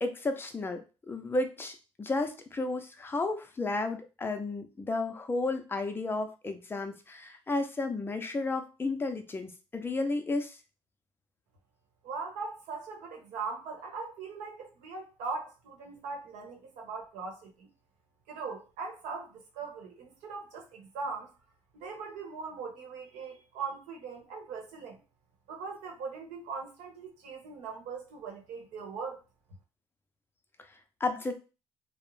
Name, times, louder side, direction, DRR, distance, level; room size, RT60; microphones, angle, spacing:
voice 1, 0.0-10.6 31.0-31.3, left 2 dB, 20° left, 6 dB, 0.5 m, -32 dB
voice 2, 12.0-17.7 18.3-21.3 21.7-25.0 25.5-29.2, right 4 dB, 85° right, 1 dB, 1.0 m, -40 dB
2.5 x 2.0 x 3.1 m, 0.31 s
cardioid pair, 110°, 12 cm